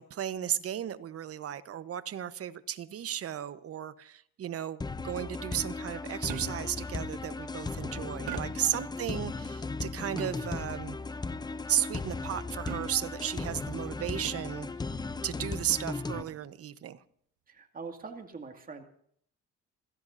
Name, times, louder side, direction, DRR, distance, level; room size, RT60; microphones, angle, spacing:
voice 1, 0.0-11.0 11.7-14.7 15.2-17.0, right 10 dB, 50° right, 1.1 m, -34 dB
sound 1, 4.8-16.2, left 3 dB, 15° left, 0.7 m, -36 dB
sound 2, 6.3-6.8 8.3-8.8 10.2-10.7 12.7-13.2 14.2-14.7 16.1-16.5, right 10 dB, 80° right, 1.3 m, -42 dB
voice 2, 17.5-18.8, right 4 dB, 30° right, 2.2 m, -43 dB
28.0 x 16.0 x 2.7 m
cardioid pair, 115°, 30 cm